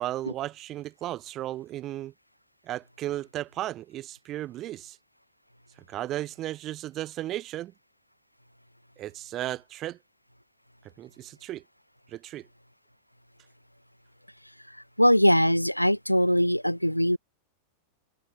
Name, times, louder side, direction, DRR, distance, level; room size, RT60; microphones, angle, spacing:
voice 1, 0.0-2.1 2.6-5.0 5.9-7.7 9.0-10.0 11.0-11.6 12.1-12.5, right 14 dB, 35° right, 1.4 m, -35 dB
voice 2, 15.0-17.2, equal, 90° left, 1.6 m, -21 dB
figure-of-eight pair, 90°, 0 cm